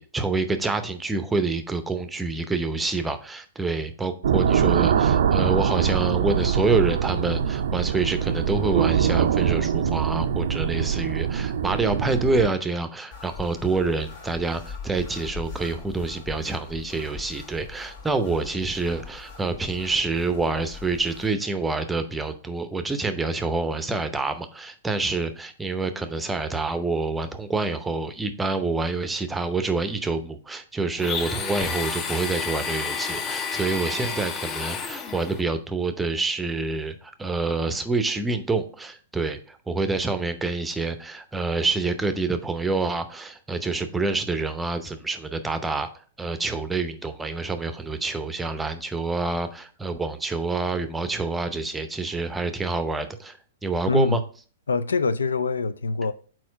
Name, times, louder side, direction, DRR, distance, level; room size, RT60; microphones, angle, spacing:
voice 1, 0.0-45.9 46.2-54.2, right 3 dB, 10° right, 0.7 m, -27 dB
sound 1, 4.2-12.5, right 8 dB, 65° right, 0.4 m, -23 dB
sound 2, 13.1-21.3, left 5 dB, 55° left, 1.6 m, -41 dB
Domestic sounds home sounds, 31.0-35.4, left 6 dB, 25° left, 0.7 m, -30 dB
voice 2, 53.9-54.2 54.7-56.1, left 4 dB, 75° left, 0.4 m, -24 dB
4.4 x 4.3 x 5.6 m
figure-of-eight pair, 110°, 0 cm